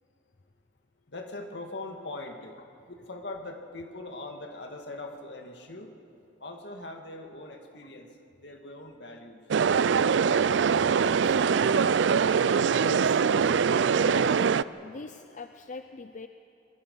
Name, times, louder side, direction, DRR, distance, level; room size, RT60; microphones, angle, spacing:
voice 1, 1.1-5.9 6.4-8.1 8.4-9.5, left 2 dB, 65° left, 3 dB, 2.1 m, -41 dB
sound 1, 9.5-14.6, right 6 dB, 75° right, 0.4 m, -23 dB
voice 2, 10.9-12.0 12.3-13.3 14.0-14.4 14.8-16.3, left 4 dB, 40° left, 8 dB, 0.5 m, -42 dB
26.5 x 21.5 x 5.5 m, 2.8 s
head